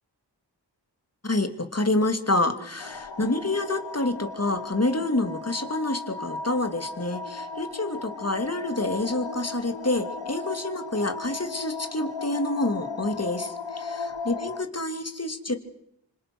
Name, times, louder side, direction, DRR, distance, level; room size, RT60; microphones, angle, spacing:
voice 1, 1.2-15.6, left 2 dB, 35° left, 8 dB, 3.0 m, -28 dB
sound 1, 2.8-14.6, left 4 dB, 90° left, 1.4 m, -36 dB
27.0 x 26.0 x 6.3 m, 0.73 s
wide cardioid pair, 40°, 42 cm